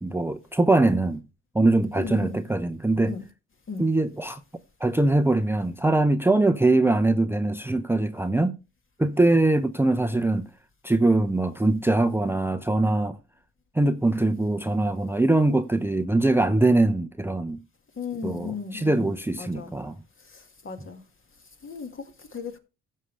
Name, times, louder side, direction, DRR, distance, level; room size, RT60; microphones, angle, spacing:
voice 1, 0.0-1.2 1.5-3.2 3.8-4.4 4.8-8.6 9.0-10.4 10.8-13.2 13.8-17.6 18.2-19.9, right 2 dB, 10° right, 0.7 m, -22 dB
voice 2, 1.9-2.4 3.1-3.2 3.7-3.9 18.0-19.7 20.3-21.0 21.6-22.6, left 5 dB, 40° left, 2.1 m, -36 dB
15.5 x 6.5 x 3.3 m
cardioid pair, 90°, 30 cm